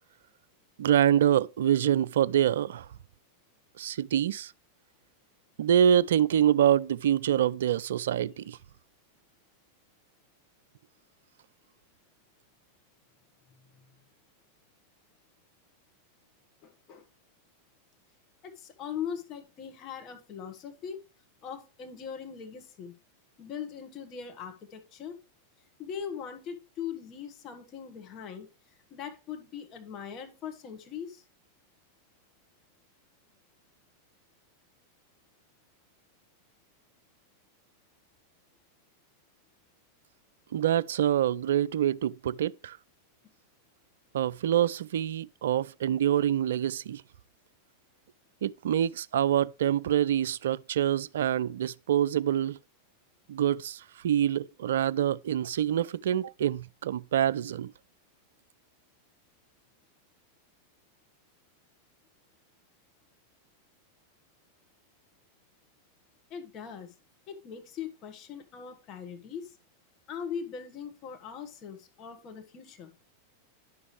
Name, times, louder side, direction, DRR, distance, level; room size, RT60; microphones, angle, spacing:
voice 1, 0.8-2.9 3.8-4.5 5.6-8.6 40.5-42.8 44.1-47.0 48.4-52.6 53.3-57.7, right 10 dB, 60° right, 0.3 m, -26 dB
voice 2, 16.6-17.0 18.4-21.0 21.4-22.9 23.4-25.1 25.8-28.5 28.9-31.2 66.3-66.9 67.3-69.6 70.1-72.9, left 7 dB, 35° left, 1.6 m, -40 dB
11.0 x 6.8 x 3.2 m
figure-of-eight pair, 90°, 0 cm